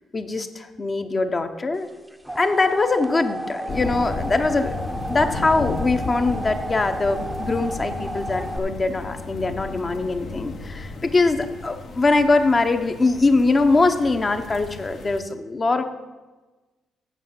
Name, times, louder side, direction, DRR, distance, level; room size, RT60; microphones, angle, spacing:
voice 1, 0.1-1.9 2.4-15.8, left 3 dB, 30° left, 7 dB, 0.9 m, -22 dB
sound 1, 1.9-8.6, right 1 dB, 5° right, 0.7 m, -33 dB
sound 2, 3.7-15.2, left 4 dB, 55° left, 1.0 m, -34 dB
8.3 x 6.6 x 7.4 m, 1.2 s
cardioid pair, 90°, 0 cm